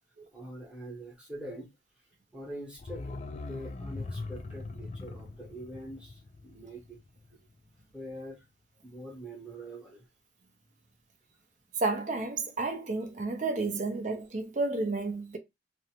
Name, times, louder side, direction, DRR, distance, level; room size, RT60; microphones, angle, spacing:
voice 1, 0.3-1.7 2.3-7.0 7.9-8.4 8.8-10.1, right 1 dB, 5° right, 0.9 m, -44 dB
sound 1, 2.7-7.5 7.8-7.9, left 3 dB, 35° left, 0.3 m, -41 dB
voice 2, 11.8-15.4, right 3 dB, 40° right, 0.5 m, -31 dB
2.6 x 2.1 x 2.8 m
head